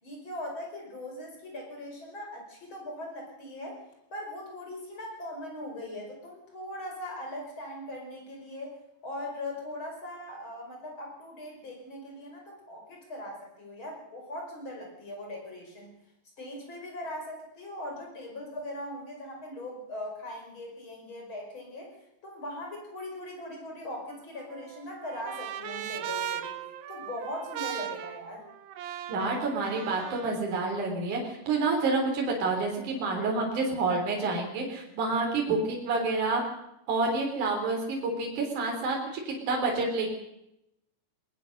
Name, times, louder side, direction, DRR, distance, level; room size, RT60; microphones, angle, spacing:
voice 1, 0.0-3.8 4.1-8.7 9.0-15.9 16.4-22.0 22.2-26.6 26.9-28.4, left 1 dB, 30° left, 1 dB, 5.9 m, -40 dB
Trumpet, 24.1-30.4, right 11 dB, 80° right, 2.9 m, -38 dB
voice 2, 29.1-36.4 36.9-40.1, right 3 dB, 55° right, 0 dB, 5.1 m, -28 dB
20.5 x 20.0 x 6.7 m, 0.84 s
omnidirectional pair, 4.3 m